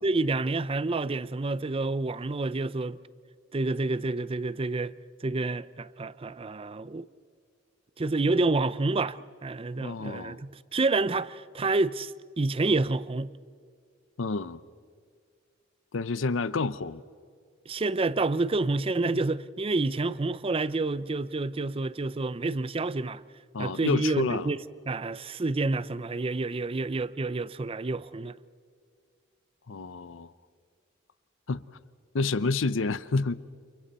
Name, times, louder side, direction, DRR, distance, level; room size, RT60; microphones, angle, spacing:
voice 1, 0.0-3.0 3.5-4.9 5.2-7.1 8.0-13.3 17.7-23.2 23.6-24.6 24.9-28.4, right 3 dB, 30° right, 0.5 m, -28 dB
voice 2, 9.8-10.4 14.2-14.6 15.9-17.0 23.5-24.5 29.7-30.3 31.5-31.6 32.1-33.3, left 3 dB, 80° left, 0.7 m, -29 dB
29.5 x 29.0 x 4.3 m
head